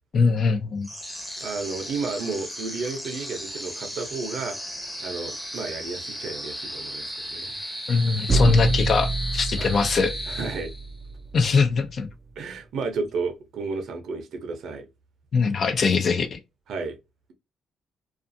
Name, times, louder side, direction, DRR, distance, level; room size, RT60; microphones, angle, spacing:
voice 1, 0.1-0.9 7.9-10.1 11.3-12.1 15.3-16.4, left 4 dB, 50° left, 0.5 m, -22 dB
sound 1, 0.8-11.1, equal, 5° left, 0.8 m, -35 dB
voice 2, 1.4-4.6 5.0-7.5 9.6-9.7 10.3-10.7 12.4-14.9 16.7-17.0, right 4 dB, 75° right, 0.7 m, -32 dB
sound 2, 8.3-12.1, right 2 dB, 25° right, 0.4 m, -27 dB
2.4 x 2.4 x 2.6 m
cardioid pair, 90°, 0 cm